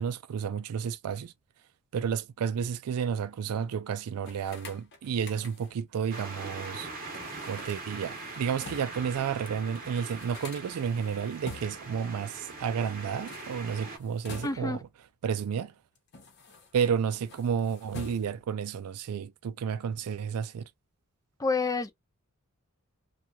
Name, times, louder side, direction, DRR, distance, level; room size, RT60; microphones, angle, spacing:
voice 1, 0.0-1.3 1.9-7.2 7.4-14.8 15.2-15.7 16.7-20.7, right 7 dB, 85° right, 0.4 m, -31 dB
sound 1, 4.2-5.9 7.1-9.1 9.5-9.6 9.7-12.0 13.1-14.9 15.6-16.9 17.2-18.6, left 3 dB, 50° left, 0.9 m, -47 dB
sound 2, 6.1-14.0, right 3 dB, 40° right, 0.9 m, -42 dB
voice 2, 14.4-14.8 21.4-21.9, left 4 dB, 15° left, 0.4 m, -28 dB
2.9 x 2.3 x 2.3 m
head